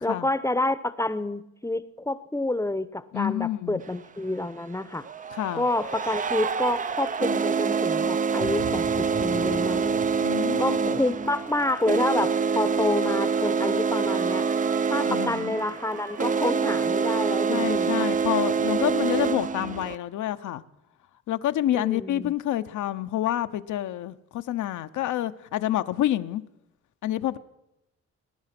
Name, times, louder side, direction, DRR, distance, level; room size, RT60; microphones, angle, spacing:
voice 1, 0.0-5.1 5.5-10.0 10.6-14.5 14.9-18.1 21.7-22.3, left 2 dB, 10° left, 0.8 m, -28 dB
voice 2, 3.1-3.8 5.3-5.7 10.2-11.0 15.1-15.5 17.5-20.6 21.3-26.4 27.0-27.4, left 13 dB, 75° left, 0.8 m, -28 dB
sound 1, 3.8-3.9 4.9-20.0, right 5 dB, 25° right, 0.5 m, -26 dB
sound 2, 8.4-12.3, right 4 dB, 65° right, 3.1 m, -42 dB
Trumpet, 12.2-18.9, right 4 dB, 80° right, 6.8 m, -44 dB
20.0 x 10.5 x 6.0 m
cardioid pair, 90°, 30 cm